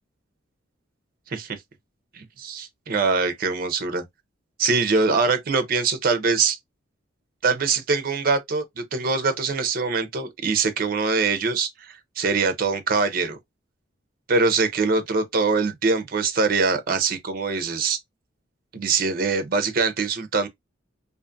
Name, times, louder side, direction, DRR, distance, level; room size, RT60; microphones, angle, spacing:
voice 1, 2.1-4.0 4.6-6.6 7.4-13.4 14.3-18.0 18.7-20.5, right 4 dB, 50° right, 0.5 m, -23 dB
2.5 x 2.4 x 2.4 m
head